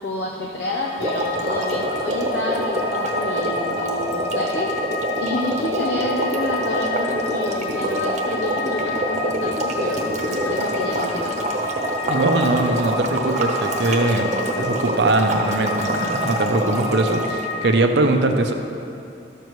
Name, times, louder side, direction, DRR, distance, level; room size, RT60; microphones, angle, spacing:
voice 1, 0.0-4.7 5.2-11.3, left 2 dB, 80° left, -1 dB, 0.6 m, -29 dB
sound 1, 0.6-17.7, left 3 dB, 5° right, 1.2 m, -31 dB
sound 2, 1.0-17.4, right 1 dB, 40° right, 0.9 m, -25 dB
voice 2, 12.1-18.5, right 2 dB, 75° right, 5 dB, 0.7 m, -21 dB
13.0 x 6.7 x 3.1 m, 2.7 s
head